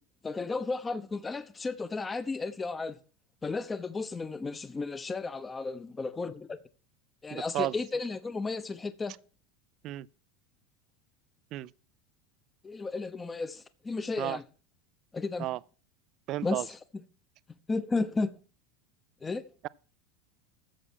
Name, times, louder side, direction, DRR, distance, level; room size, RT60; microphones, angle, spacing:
voice 1, 0.2-3.0 3.4-6.6 7.2-9.1 12.6-14.4 15.1-15.5 16.4-16.8 17.7-18.4 19.2-19.4, left 3 dB, 20° left, 0.9 m, -33 dB
voice 2, 7.3-7.7 9.8-10.1 11.5-11.7 14.2-14.4 15.4-15.6 16.3-16.7, right 15 dB, 50° right, 0.5 m, -32 dB
14.0 x 7.4 x 4.6 m
supercardioid pair, 110°, 0 cm